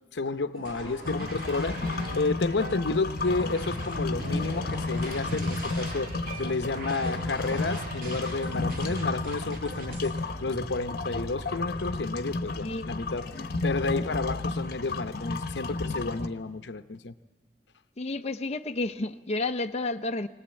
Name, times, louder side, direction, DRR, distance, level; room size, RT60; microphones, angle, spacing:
voice 1, 0.1-6.1 6.4-10.1 10.4-13.3 13.6-17.1, left 3 dB, 80° left, 12 dB, 0.8 m, -31 dB
sound 1, 0.5-10.1, right 1 dB, 55° right, 5.2 m, -41 dB
sound 2, 1.0-16.3, left 3 dB, 55° left, 1.1 m, -33 dB
sound 3, 3.0-12.1, right 3 dB, 25° right, 1.2 m, -43 dB
voice 2, 12.6-12.9 18.0-20.3, left 2 dB, 35° left, 5 dB, 0.6 m, -31 dB
21.0 x 19.0 x 8.9 m, 1.2 s
head